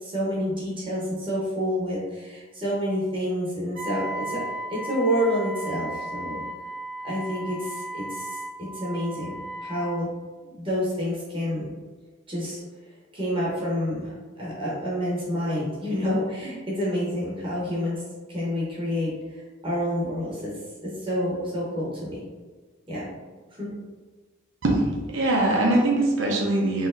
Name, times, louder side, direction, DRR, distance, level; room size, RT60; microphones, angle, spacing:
voice 1, 0.0-4.4 4.7-6.4 7.0-10.1 10.4-11.7 12.3-12.6 13.1-18.0 18.3-20.5 20.8-22.2 22.9-23.1 23.6-23.7, equal, 25° right, -6 dB, 0.8 m, -28 dB
Wind instrument woodwind instrument, 3.8-10.0, right 1 dB, 85° right, 1.2 m, -35 dB
voice 2, 25.1-26.9, right 2 dB, 65° right, -2 dB, 0.7 m, -22 dB
4.1 x 3.0 x 2.5 m, 1.3 s
head